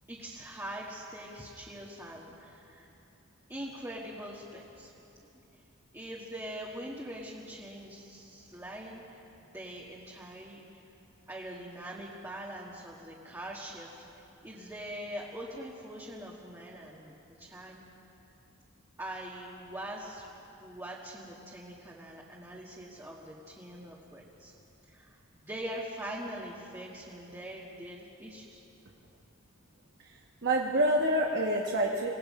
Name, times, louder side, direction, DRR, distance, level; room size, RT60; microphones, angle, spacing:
voice 1, 0.1-2.9 3.5-4.9 5.9-10.6 11.3-17.8 19.0-24.5 24.9-28.6, right 1 dB, 15° right, -4 dB, 1.6 m, -43 dB
voice 2, 30.0-32.1, right 1 dB, 55° right, 0 dB, 1.3 m, -27 dB
26.5 x 18.0 x 5.5 m, 3.0 s
head